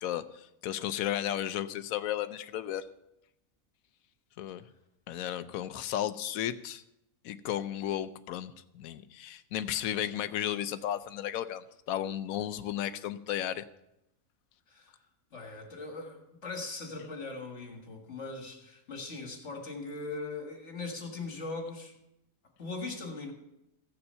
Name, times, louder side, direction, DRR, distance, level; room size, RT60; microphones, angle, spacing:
voice 1, 0.0-2.8 4.4-4.6 5.1-6.8 7.2-13.6, left 11 dB, 85° left, 1.1 m, -34 dB
voice 2, 14.7-15.0 15.3-22.0 22.6-23.3, left 3 dB, 60° left, 2.0 m, -40 dB
15.0 x 6.9 x 5.6 m
omnidirectional pair, 1.4 m